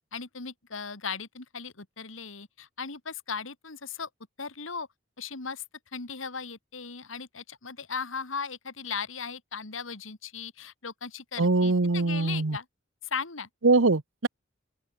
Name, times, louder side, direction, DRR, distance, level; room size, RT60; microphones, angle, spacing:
voice 1, 0.1-4.1 4.4-4.9 5.2-5.6 5.9-12.7 13.1-13.5, left 5 dB, 80° left, 2.3 m, -37 dB
voice 2, 11.4-12.6 13.6-14.3, right 3 dB, 75° right, 1.1 m, -23 dB
open air
head